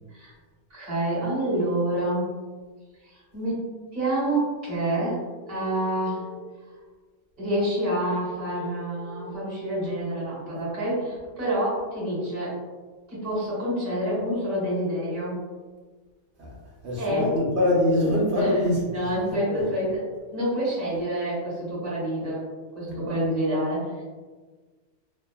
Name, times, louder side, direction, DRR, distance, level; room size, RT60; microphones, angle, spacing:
voice 1, 0.7-2.3 3.0-5.2 5.5-6.3 7.4-12.6 13.1-15.4 17.0-17.3 18.4-18.5 18.9-20.0 20.3-22.4 22.7-24.0, right 1 dB, 40° right, -8 dB, 1.4 m, -27 dB
sound 1, 5.4-6.4 8.3-9.3 11.3-12.3 14.2-15.2 17.1-18.1 20.1-20.5, left 7 dB, 65° left, 0.7 m, -43 dB
voice 2, 16.8-19.6, left 1 dB, 60° right, -4 dB, 1.0 m, -24 dB
2.8 x 2.2 x 2.2 m, 1.4 s
omnidirectional pair, 1.4 m